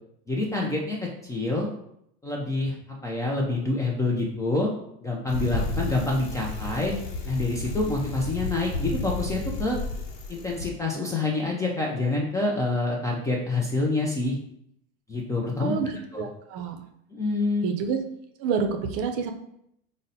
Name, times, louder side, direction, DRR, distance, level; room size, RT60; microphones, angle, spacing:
voice 1, 0.3-1.7 2.2-2.8 3.0-4.7 5.0-6.9 7.3-9.8 10.3-14.4 15.1-15.8 16.1-16.3 17.1-17.7, left 2 dB, 10° left, -2 dB, 0.3 m, -27 dB
Bicycle, 5.3-10.7, left 2 dB, 85° left, 0.7 m, -32 dB
voice 2, 16.2-16.8 17.6-18.0 18.4-19.3, right 6 dB, 50° right, 5 dB, 0.5 m, -27 dB
3.8 x 2.1 x 4.0 m, 0.74 s
supercardioid pair, 145°, 30 cm